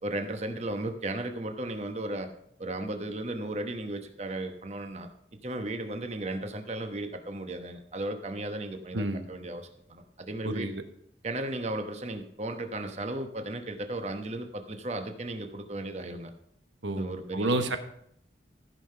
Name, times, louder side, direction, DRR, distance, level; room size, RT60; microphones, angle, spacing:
voice 1, 0.0-2.3 2.6-5.1 5.4-10.7 11.2-16.3 16.9-17.5, right 1 dB, 35° right, 6 dB, 1.0 m, -35 dB
voice 2, 8.9-9.3 10.4-10.8 16.8-17.1 17.3-17.8, right 2 dB, 85° right, 8 dB, 1.1 m, -29 dB
14.5 x 5.8 x 5.6 m, 0.71 s
head